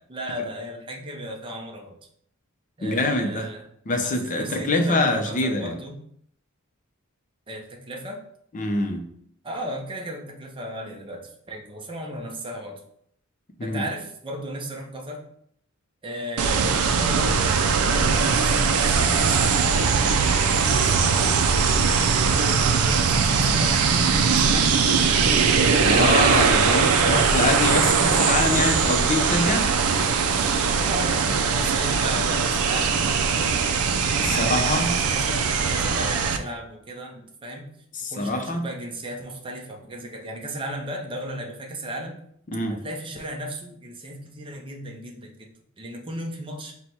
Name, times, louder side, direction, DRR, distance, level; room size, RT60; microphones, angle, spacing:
voice 1, 0.1-1.9 2.8-3.7 4.0-6.0 7.5-8.2 9.4-12.8 13.6-15.2 16.0-17.5 17.9-21.7 22.3-24.8 30.8-33.7 34.1-35.4 35.7-37.7 38.1-42.1 42.7-45.5 45.8-46.7, right 1 dB, 25° right, 1 dB, 0.6 m, -36 dB
voice 2, 2.8-3.5 3.9-5.8 8.5-9.1 13.6-13.8 25.8-29.7 34.2-34.9 37.9-38.7 42.5-42.8, left 2 dB, 35° left, 5 dB, 0.5 m, -25 dB
sound 1, 16.4-36.4, right 5 dB, 85° right, 0.4 m, -21 dB
4.5 x 2.2 x 4.1 m, 0.68 s
head